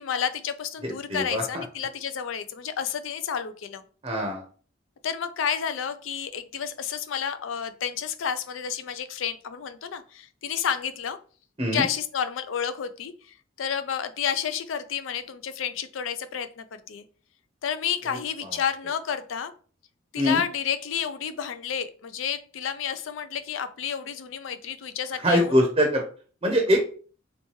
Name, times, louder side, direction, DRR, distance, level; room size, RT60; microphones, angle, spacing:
voice 1, 0.0-3.8 5.0-11.2 11.7-17.0 17.6-19.5 20.1-25.6 26.8-26.9, left 7 dB, 80° left, 11 dB, 0.4 m, -30 dB
voice 2, 0.8-1.6 4.0-4.4 11.6-11.8 20.2-20.4 25.2-26.0 26.4-26.8, equal, 30° right, 1 dB, 0.6 m, -23 dB
3.2 x 2.9 x 3.1 m, 0.41 s
head